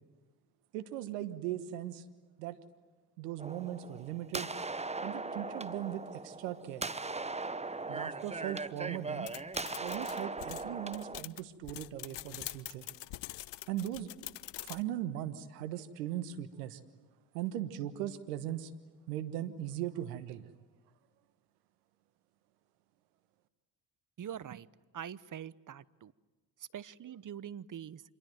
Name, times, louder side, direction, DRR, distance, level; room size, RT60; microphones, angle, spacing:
voice 1, 0.7-2.1 2.4-2.6 3.2-4.5 5.0-6.9 7.9-9.3 9.8-12.9 13.7-14.1 14.6-16.8 17.3-18.7 19.1-20.5, right 12 dB, 90° right, 11 dB, 1.4 m, -39 dB
sound 1, 3.4-11.2, right 3 dB, 15° right, 1.1 m, -39 dB
sound 2, 9.3-14.8, left 18 dB, 65° left, 0.8 m, -44 dB
voice 2, 24.2-24.7 24.9-26.1 26.7-28.0, right 9 dB, 40° right, 18 dB, 1.0 m, -44 dB
27.0 x 23.0 x 9.4 m, 1.2 s
hypercardioid pair, 50°, 46 cm